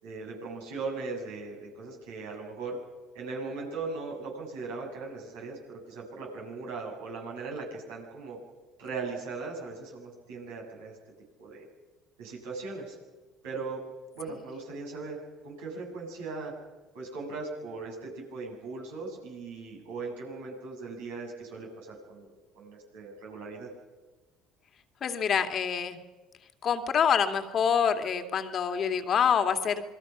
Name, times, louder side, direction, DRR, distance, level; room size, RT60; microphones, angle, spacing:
voice 1, 0.0-2.8 3.1-8.4 8.8-11.0 11.4-11.7 12.2-13.0 13.4-13.8 14.1-16.5 16.9-23.7, right 3 dB, 80° right, -1 dB, 7.3 m, -39 dB
voice 2, 25.0-26.0 26.6-29.8, left 7 dB, 50° left, 7 dB, 2.4 m, -26 dB
27.0 x 21.5 x 6.0 m, 1.3 s
hypercardioid pair, 65°, 0 cm